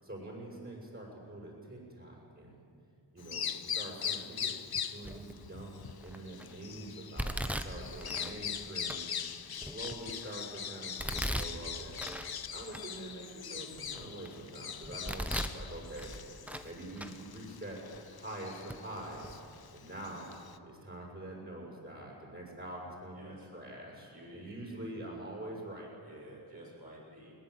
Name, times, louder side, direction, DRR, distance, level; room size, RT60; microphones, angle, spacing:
voice 1, 0.0-2.6 3.1-4.6 4.9-12.1 12.5-17.8 18.1-19.4 19.7-20.3 20.6-25.9, right 1 dB, 30° right, -4 dB, 6.5 m, -45 dB
Bird vocalization bird call bird song, 3.2-20.6, left 8 dB, 60° left, 0.9 m, -42 dB
Domestic sounds home sounds, 5.0-5.4 6.0-6.4 7.2-8.3 8.9-9.0 9.6-10.3 11.0-12.3 12.7-12.8 13.4-14.3 14.8-15.6 16.0-16.7 17.0-17.1 17.9-18.0 18.7-18.8 19.1-19.3, equal, 5° right, 1.0 m, -38 dB
voice 2, 7.7-8.1 23.1-23.5 24.1-25.1 26.0-27.3, right 1 dB, 55° right, -4 dB, 7.3 m, -52 dB
21.5 x 18.5 x 8.1 m, 2.5 s
wide cardioid pair, 75°, 42 cm